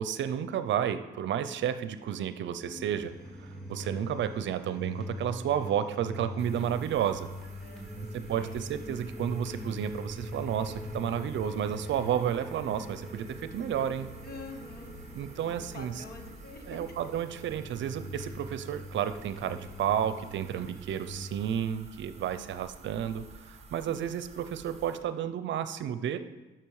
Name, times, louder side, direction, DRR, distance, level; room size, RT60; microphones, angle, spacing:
voice 1, 0.0-7.3 8.1-14.1 15.1-16.0 16.7-26.2, right 9 dB, 70° right, 11 dB, 0.6 m, -32 dB
sound 1, 2.6-21.3, equal, ahead, 3.1 m, -42 dB
sound 2, 6.4-25.0, right 4 dB, 30° right, 1.3 m, -52 dB
voice 2, 7.6-8.6 14.2-14.9 15.2-17.0 22.2-22.7 23.8-24.1, left 3 dB, 50° left, 4 dB, 1.5 m, -47 dB
11.5 x 5.9 x 4.8 m, 1.1 s
cardioid pair, 90°, 20 cm